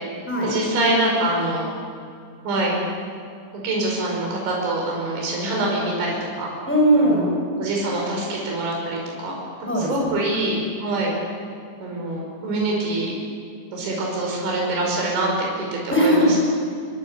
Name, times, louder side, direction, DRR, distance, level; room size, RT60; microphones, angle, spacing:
voice 1, 0.4-1.7 2.4-2.7 3.5-6.5 7.0-7.3 7.6-9.4 9.8-11.1 11.8-13.1 13.7-16.3, right 2 dB, 85° right, -2 dB, 7.7 m, -25 dB
voice 2, 6.7-7.4 9.7-10.2 15.9-16.4, equal, ahead, -2 dB, 7.6 m, -19 dB
26.5 x 23.5 x 8.6 m, 2.3 s
omnidirectional pair, 5.2 m